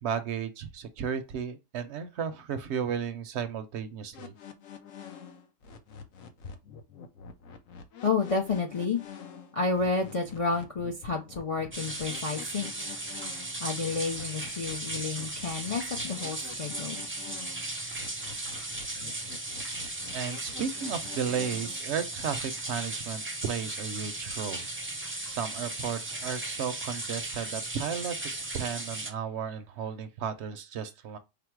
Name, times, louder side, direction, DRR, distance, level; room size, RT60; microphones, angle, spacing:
voice 1, 0.0-4.3 20.1-24.7 25.0-31.2, right 7 dB, 65° right, 0.8 m, -34 dB
sound 1, 4.1-21.9, left 6 dB, 75° left, 1.1 m, -47 dB
voice 2, 8.0-9.0 9.5-12.7 13.6-17.0, left 4 dB, 50° left, 0.4 m, -30 dB
sound 2, 11.7-29.1, right 2 dB, 15° right, 0.5 m, -36 dB
5.0 x 2.0 x 4.5 m
omnidirectional pair, 1.4 m